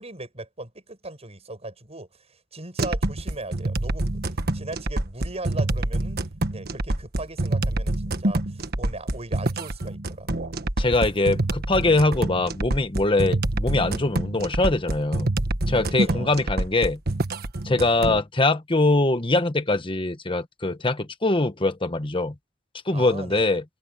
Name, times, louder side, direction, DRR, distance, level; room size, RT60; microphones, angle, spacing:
voice 1, 0.0-6.2 6.5-10.5 16.0-16.3 22.9-23.5, right 2 dB, 30° right, 7.9 m, -38 dB
sound 1, 2.8-18.2, right 2 dB, 55° right, 1.5 m, -26 dB
voice 2, 10.8-15.3 15.7-17.0 17.6-22.3 22.9-23.6, left 2 dB, 25° left, 1.3 m, -23 dB
head